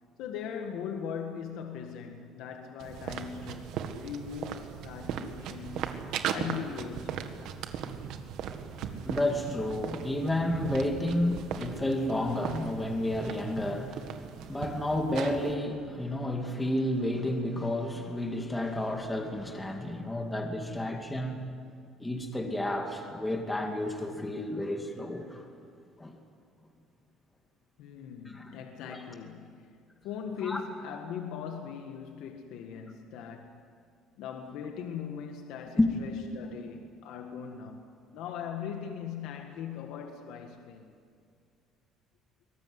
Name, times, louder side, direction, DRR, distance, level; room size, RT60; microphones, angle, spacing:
voice 1, 0.2-6.0 6.3-7.2 27.8-29.7 30.0-33.6 34.2-40.9, left 7 dB, 75° left, 4 dB, 1.7 m, -40 dB
sound 1, 2.8-15.5, right 8 dB, 70° right, 1.7 m, -38 dB
voice 2, 8.7-21.5 22.0-25.4 26.0-26.1 28.3-28.5 28.9-29.0 30.5-30.6 35.8-35.9, left 1 dB, 10° left, 2 dB, 2.4 m, -31 dB
23.0 x 19.5 x 9.6 m, 2.3 s
cardioid pair, 130°, 0 cm